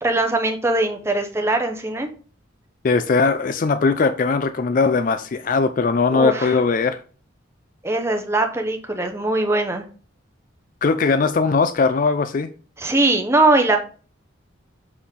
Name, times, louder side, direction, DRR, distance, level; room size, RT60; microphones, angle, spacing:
voice 1, 0.0-2.1 6.1-6.6 7.8-9.9 12.8-13.8, right 2 dB, 15° right, 0.9 m, -21 dB
voice 2, 2.8-7.0 10.8-12.5, left 4 dB, 45° left, 0.4 m, -19 dB
7.0 x 4.3 x 3.6 m
head